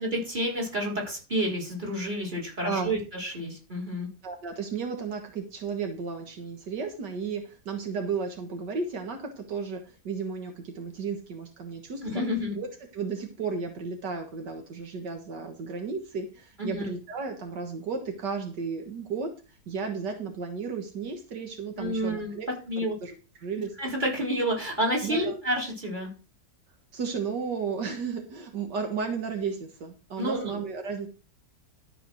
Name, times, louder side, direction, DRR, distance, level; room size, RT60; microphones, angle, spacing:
voice 1, 0.0-4.1 12.0-12.6 16.6-16.9 21.8-22.4 22.7-22.9 23.8-26.1 30.2-30.6, equal, 25° right, 0 dB, 4.2 m, -29 dB
voice 2, 2.6-2.9 4.2-12.2 12.6-22.5 22.8-23.1 23.4-23.7 25.0-25.4 26.9-31.1, right 5 dB, 80° right, 5 dB, 2.0 m, -34 dB
12.5 x 4.9 x 6.2 m, 0.34 s
omnidirectional pair, 1.8 m